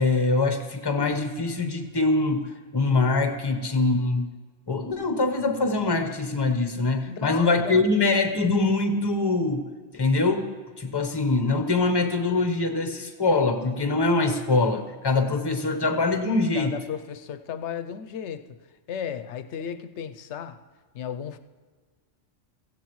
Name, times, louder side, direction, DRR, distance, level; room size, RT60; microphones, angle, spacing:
voice 1, 0.0-4.3 4.7-9.7 9.9-16.7, left 3 dB, 25° left, 0.8 m, -23 dB
voice 2, 7.1-7.8 16.5-18.6 18.9-20.6 20.9-21.4, left 8 dB, 70° left, 0.9 m, -34 dB
15.5 x 15.0 x 3.1 m
omnidirectional pair, 1.3 m